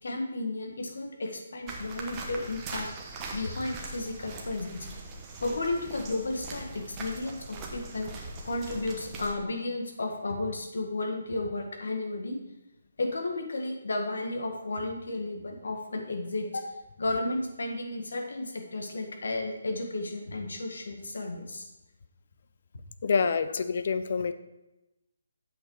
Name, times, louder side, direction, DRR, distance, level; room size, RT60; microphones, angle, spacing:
voice 1, 0.0-2.9 3.3-5.0 5.4-8.1 8.4-12.4 13.0-16.6 17.0-21.7, left 2 dB, 75° left, 2 dB, 1.8 m, -33 dB
sound 1, 1.7-9.3, right 2 dB, 15° right, 1.0 m, -41 dB
voice 2, 23.0-24.3, left 5 dB, 50° left, 11 dB, 0.6 m, -27 dB
7.9 x 6.3 x 4.8 m, 0.97 s
hypercardioid pair, 170°, 0 cm